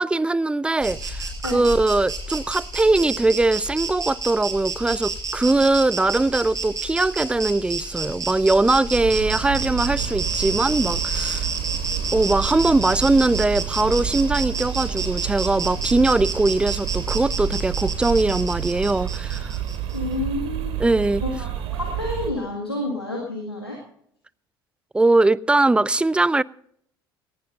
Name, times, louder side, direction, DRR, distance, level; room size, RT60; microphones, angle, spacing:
voice 1, 0.0-11.5 12.1-19.5 20.8-21.2 24.9-26.4, right 2 dB, 10° right, 0.4 m, -21 dB
Insect, 0.8-20.0, right 3 dB, 25° right, 5.3 m, -30 dB
sound 1, 9.0-22.3, right 11 dB, 50° right, 2.4 m, -29 dB
voice 2, 19.9-20.8 21.2-23.8, left 2 dB, 90° left, 1.9 m, -29 dB
18.5 x 16.5 x 2.6 m
figure-of-eight pair, 60°, 13 cm